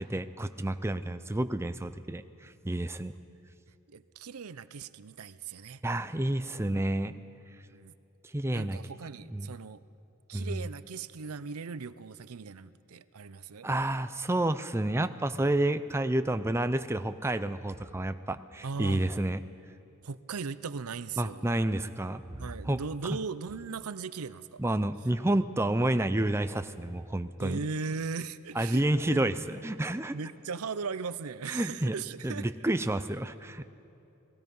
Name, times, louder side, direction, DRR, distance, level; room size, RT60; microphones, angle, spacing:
voice 1, 0.0-3.1 5.8-7.1 8.3-8.8 9.2-9.5 10.3-10.7 13.6-19.4 21.2-22.8 24.6-27.7 28.6-30.1 31.5-31.9 32.2-33.7, right 1 dB, 10° right, 10 dB, 0.5 m, -30 dB
voice 2, 3.9-5.8 7.7-7.9 8.5-9.8 10.3-13.7 18.6-19.0 20.0-21.5 22.4-24.6 27.4-29.2 30.1-32.5, right 5 dB, 80° right, 15 dB, 0.6 m, -38 dB
29.0 x 19.5 x 5.4 m, 2.7 s
head